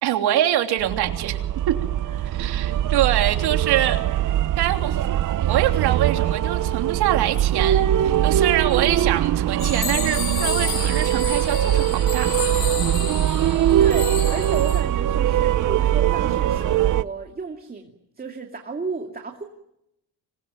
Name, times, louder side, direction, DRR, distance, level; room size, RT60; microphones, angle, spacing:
voice 1, 0.0-1.7 2.2-4.0 4.6-5.2 5.5-12.7, right 12 dB, 85° right, 5 dB, 3.3 m, -24 dB
sound 1, 0.8-17.0, right 11 dB, 55° right, 0.9 m, -21 dB
sound 2, 9.6-14.8, left 6 dB, 55° left, 6.7 m, -31 dB
voice 2, 13.8-19.4, right 4 dB, 25° right, 3 dB, 2.6 m, -33 dB
26.0 x 21.0 x 9.4 m, 0.82 s
cardioid pair, 130°, 38 cm